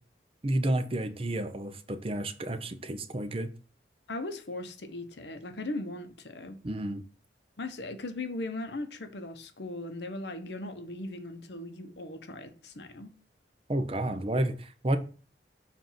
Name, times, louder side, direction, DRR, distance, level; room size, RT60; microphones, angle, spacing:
voice 1, 0.4-3.5 6.6-7.0 13.7-15.0, right 1 dB, 30° right, 0.6 m, -30 dB
voice 2, 4.1-6.6 7.6-13.1, left 2 dB, 75° left, 0.9 m, -38 dB
7.3 x 2.6 x 5.6 m
head